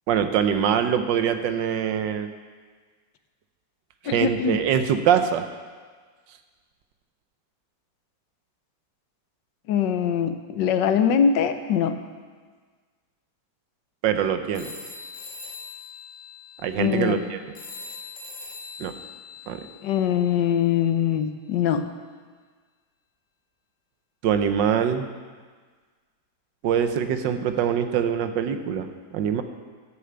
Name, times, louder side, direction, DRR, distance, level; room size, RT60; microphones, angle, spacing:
voice 1, 0.1-2.3 4.0-5.4 14.0-14.7 16.6-17.4 18.8-18.9 19.5-19.6 24.2-25.1 26.6-28.9 29.1-29.4, right 8 dB, 85° right, 9 dB, 1.4 m, -23 dB
voice 2, 4.0-4.6 9.7-12.0 16.8-17.2 19.8-21.8, left 8 dB, 80° left, 9 dB, 1.4 m, -22 dB
sound 1, 14.5-20.7, left 4 dB, 50° left, 1.5 m, -42 dB
11.0 x 6.7 x 7.7 m, 1.5 s
omnidirectional pair, 2.0 m